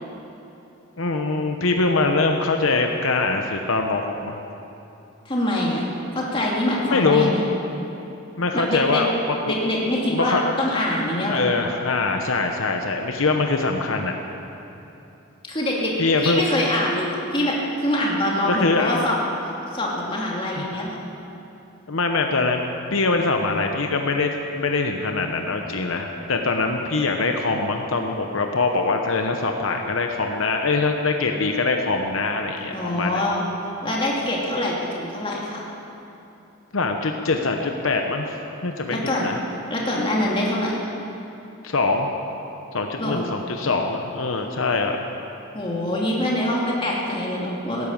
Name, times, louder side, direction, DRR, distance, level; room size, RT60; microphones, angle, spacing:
voice 1, 1.0-4.4 6.8-7.3 8.4-9.5 10.1-10.8 11.3-14.1 16.0-16.4 18.5-19.0 20.5-20.7 21.9-22.6 22.9-33.2 36.7-38.4 38.6-39.4 41.6-42.1 42.7-45.0, left 3 dB, 75° left, 3 dB, 1.0 m, -23 dB
voice 2, 5.2-5.9 6.1-7.5 8.5-9.0 9.5-11.5 15.5-19.2 19.7-21.0 32.7-33.4 33.8-35.6 38.9-39.3 39.7-40.8 43.0-43.2 45.5-47.9, left 1 dB, 25° left, -4 dB, 2.6 m, -24 dB
17.5 x 11.0 x 7.2 m, 2.9 s
head